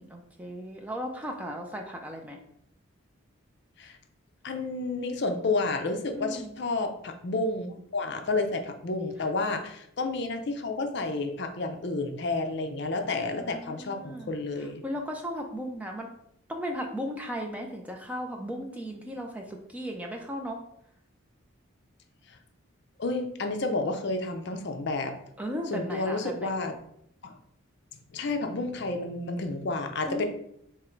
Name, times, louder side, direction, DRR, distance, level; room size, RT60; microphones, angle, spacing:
voice 1, 0.0-2.4 6.2-6.5 13.3-14.3 14.8-16.1 16.5-20.6 25.4-26.5 30.1-30.2, equal, 5° right, 2 dB, 0.4 m, -36 dB
voice 2, 4.4-14.8 22.3-22.4 23.0-25.2 25.7-26.8 27.2-27.4 28.1-30.2, left 3 dB, 55° left, 6 dB, 0.5 m, -30 dB
3.7 x 3.0 x 4.3 m, 0.73 s
head